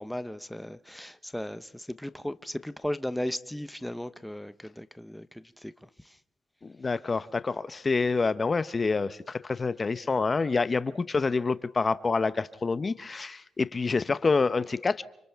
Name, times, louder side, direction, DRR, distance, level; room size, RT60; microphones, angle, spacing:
voice 1, 0.0-6.2, left 1 dB, 5° left, 0.8 m, -36 dB
voice 2, 6.6-15.0, left 4 dB, 35° left, 0.7 m, -27 dB
29.0 x 25.5 x 3.5 m
cardioid pair, 70°, 0 cm